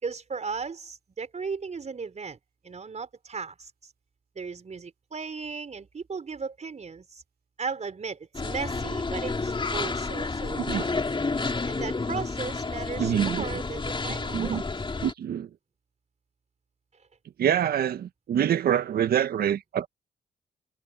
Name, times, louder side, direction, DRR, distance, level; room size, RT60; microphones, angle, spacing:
voice 1, 0.0-2.4 2.6-3.9 4.3-7.2 7.6-11.0 11.6-14.6, right 5 dB, 45° right, 5.0 m, -36 dB
sound 1, 8.3-15.1, left 3 dB, 30° left, 3.4 m, -30 dB
voice 2, 13.0-13.4 14.0-14.6 15.0-15.5 17.4-19.9, right 9 dB, 65° right, 1.6 m, -26 dB
hypercardioid pair, 50°, 17 cm